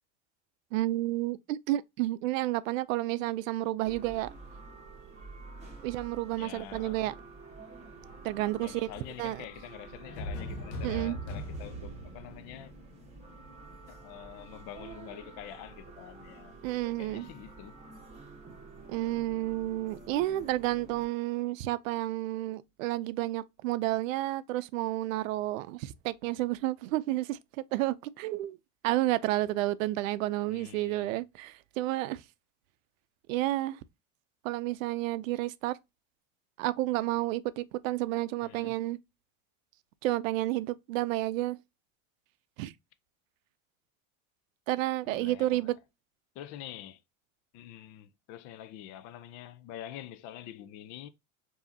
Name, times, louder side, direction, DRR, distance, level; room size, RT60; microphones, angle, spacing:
voice 1, 0.7-4.3 5.8-7.1 8.2-8.9 9.2-9.4 10.8-11.2 16.6-17.3 18.9-27.4 27.7-28.6 28.8-32.2 33.3-33.8 34.4-35.8 36.6-39.0 40.0-41.6 42.6-42.7 44.7-45.8, right 16 dB, 85° right, 0.5 m, -31 dB
sound 1, 3.8-21.1, right 3 dB, 20° right, 1.5 m, -49 dB
voice 2, 6.4-7.1 8.6-12.7 13.9-16.6 17.0-17.8 30.5-31.2 38.4-38.8 45.1-45.8 46.4-47.0 47.5-51.1, left 11 dB, 45° left, 0.5 m, -46 dB
sound 2, 10.0-13.9, equal, 70° left, 1.0 m, -40 dB
4.8 x 2.8 x 2.7 m
supercardioid pair, 135°, 38 cm